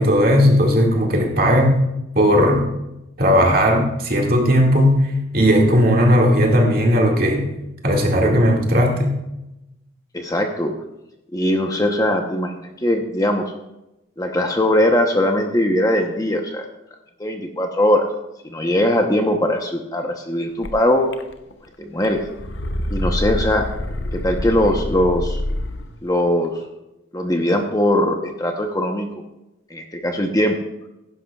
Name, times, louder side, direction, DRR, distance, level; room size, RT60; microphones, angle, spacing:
voice 1, 0.0-1.8 2.2-2.7 3.2-7.5 7.8-9.2, equal, 45° right, 0 dB, 2.1 m, -16 dB
voice 2, 10.1-10.7 11.3-13.5 14.2-16.7 17.2-18.0 18.4-21.0 21.8-22.2 22.9-23.7 24.1-25.4 26.0-26.6 27.1-29.2 29.7-30.6, left 1 dB, 15° left, 3 dB, 0.9 m, -20 dB
sound 1, 20.6-20.7 21.1-21.7 22.0-25.9, left 1 dB, 65° left, 0.8 m, -26 dB
16.0 x 11.0 x 2.4 m, 0.92 s
head